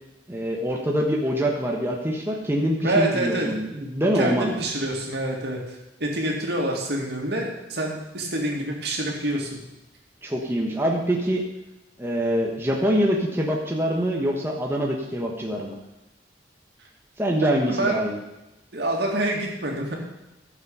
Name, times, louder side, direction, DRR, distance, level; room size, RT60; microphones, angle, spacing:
voice 1, 0.3-4.5 10.2-11.4 12.0-15.7 17.2-18.2, equal, 15° right, -1 dB, 1.2 m, -24 dB
voice 2, 2.8-3.5 4.1-9.5 17.6-18.0 18.7-20.0, right 1 dB, 65° right, -1 dB, 2.4 m, -27 dB
13.5 x 7.4 x 5.6 m, 0.97 s
head